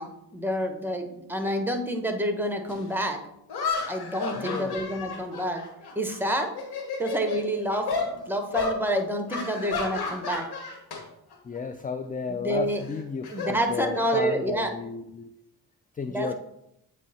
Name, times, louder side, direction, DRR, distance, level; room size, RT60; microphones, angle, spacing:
voice 1, 0.0-3.2 3.9-5.6 5.9-6.5 7.0-10.5 12.3-12.8 13.3-14.7 16.1-16.3, right 1 dB, 5° right, 5 dB, 1.2 m, -28 dB
sound 1, 2.7-2.8 3.5-6.2 6.5-7.4 7.9-8.1 8.5-8.8 9.3-11.0 11.3-11.6 12.8-14.2, left 4 dB, 90° left, 1.5 m, -32 dB
voice 2, 4.4-4.8 11.4-15.3 15.9-16.3, left 5 dB, 25° left, 9 dB, 0.4 m, -33 dB
8.3 x 3.2 x 4.2 m, 0.81 s
cardioid pair, 60°, 38 cm